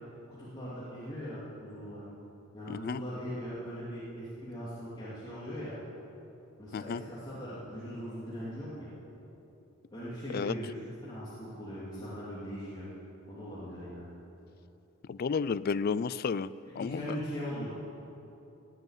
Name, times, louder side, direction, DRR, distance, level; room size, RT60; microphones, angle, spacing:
voice 1, 0.4-2.0 2.5-5.7 6.6-8.9 9.9-10.7 11.0-12.9 13.3-14.1 16.8-17.7, equal, 20° left, -10 dB, 2.9 m, -40 dB
voice 2, 2.7-3.0 6.7-7.0 10.3-10.5 15.1-16.5 16.8-17.2, left 5 dB, 45° left, 18 dB, 0.3 m, -32 dB
17.0 x 8.1 x 9.0 m, 2.9 s
head